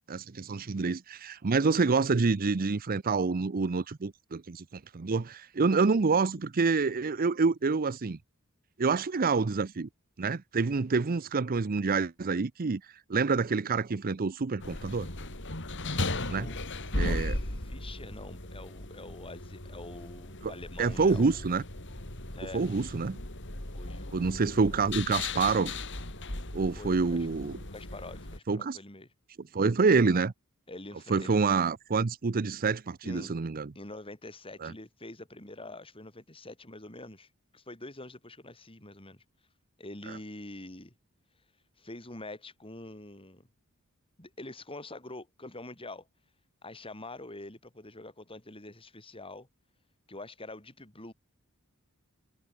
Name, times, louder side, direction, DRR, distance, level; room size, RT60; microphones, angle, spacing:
voice 1, 0.1-8.2 8.8-9.9 10.2-12.8 13.1-15.1 16.3-16.5 16.9-17.4 20.4-20.5 20.8-21.6 22.5-23.2 24.1-25.7 26.5-27.6 28.5-28.8 29.5-30.3 31.1-33.7 34.6-34.7, right 4 dB, 40° right, 0.6 m, -27 dB
sound 1, 14.6-28.4, left 2 dB, 60° left, 5.8 m, -37 dB
voice 2, 16.3-21.5 22.3-22.6 23.7-24.6 26.8-27.3 27.7-29.1 30.7-31.5 33.0-33.4 33.8-37.3 37.5-39.2 39.8-40.9 41.8-43.5 44.2-46.1 46.6-49.5 50.1-51.1, left 2 dB, 25° left, 5.5 m, -45 dB
head